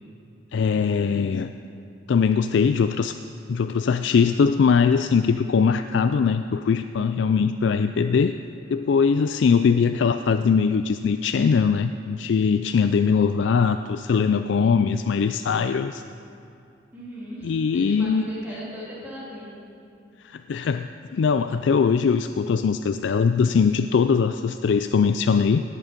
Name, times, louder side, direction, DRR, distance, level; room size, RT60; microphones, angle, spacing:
voice 1, 0.5-1.5 2.1-3.2 3.5-8.3 8.7-16.0 17.4-18.3 20.2-25.6, left 5 dB, 65° left, 9 dB, 0.3 m, -21 dB
voice 2, 16.9-19.6, left 1 dB, 10° right, -8 dB, 2.8 m, -37 dB
17.5 x 8.9 x 5.2 m, 2.7 s
head